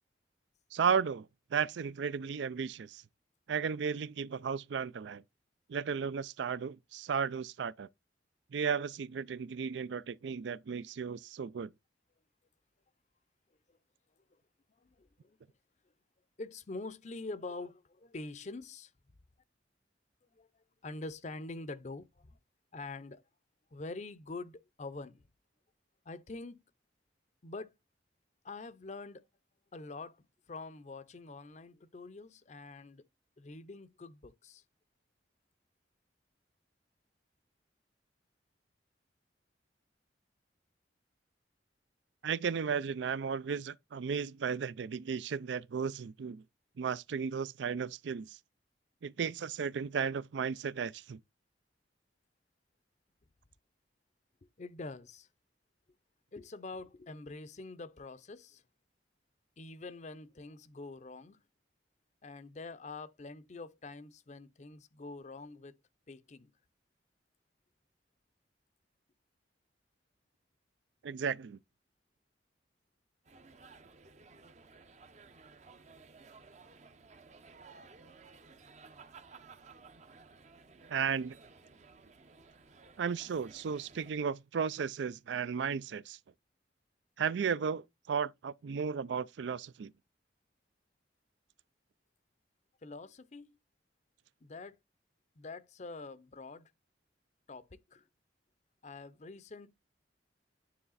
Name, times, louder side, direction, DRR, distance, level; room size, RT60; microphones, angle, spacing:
voice 1, 0.7-3.0 3.5-5.2 5.7-7.9 8.5-11.7 42.2-46.4 46.8-48.4 49.0-51.2 71.0-71.6 80.9-81.4 83.0-86.2 87.2-89.9, right 6 dB, 75° right, 0.4 m, -34 dB
voice 2, 14.8-15.4 16.4-18.9 20.3-20.5 20.8-22.4 22.7-23.2 23.7-25.3 26.1-26.6 27.4-27.7 28.4-29.3 29.7-33.0 33.4-34.6 54.6-55.3 56.3-58.6 59.6-61.4 62.2-65.8 66.1-66.5 92.8-93.6 94.4-94.8 95.4-96.7 97.5-98.0 98.8-99.7, left 3 dB, 40° left, 0.6 m, -45 dB
sound 1, 73.2-84.1, right 4 dB, 40° right, 0.7 m, -56 dB
9.5 x 3.2 x 4.0 m
head